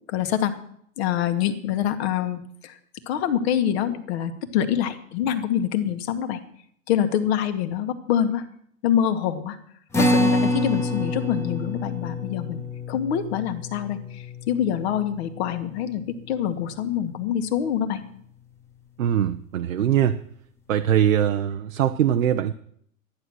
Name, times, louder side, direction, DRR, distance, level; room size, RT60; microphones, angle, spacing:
voice 1, 0.1-0.5 1.0-2.7 3.1-6.4 6.9-8.4 8.8-9.6 10.0-18.0, left 9 dB, 50° left, 9 dB, 1.6 m, -25 dB
sound 1, 9.9-16.6, left 1 dB, 5° left, 1.3 m, -27 dB
voice 2, 19.0-20.2 20.7-22.5, right 10 dB, 70° right, 7 dB, 0.8 m, -22 dB
13.0 x 9.7 x 6.3 m, 0.67 s
hypercardioid pair, 110°, 41 cm